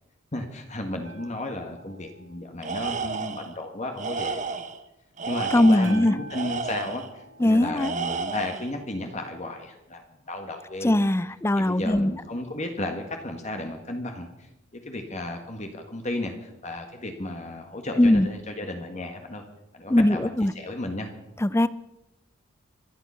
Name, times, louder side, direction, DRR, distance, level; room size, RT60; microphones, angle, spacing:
voice 1, 0.3-4.5 5.3-10.0 10.3-11.0 11.6-14.5 14.7-19.4 19.7-21.1, left 1 dB, 35° left, 4 dB, 1.7 m, -34 dB
sound 1, 1.0-3.9 5.8-9.1 11.9-12.0, right 1 dB, 65° right, 3.0 m, -48 dB
Tools, 2.6-3.5 4.0-4.8 5.2-7.1 7.8-8.7, right 4 dB, 40° right, 1.0 m, -32 dB
voice 2, 5.5-6.1 7.4-7.9 10.8-12.1 18.0-18.3 19.9-20.5 21.4-21.7, left 1 dB, 15° left, 17 dB, 0.4 m, -20 dB
25.0 x 9.2 x 5.7 m, 0.90 s
head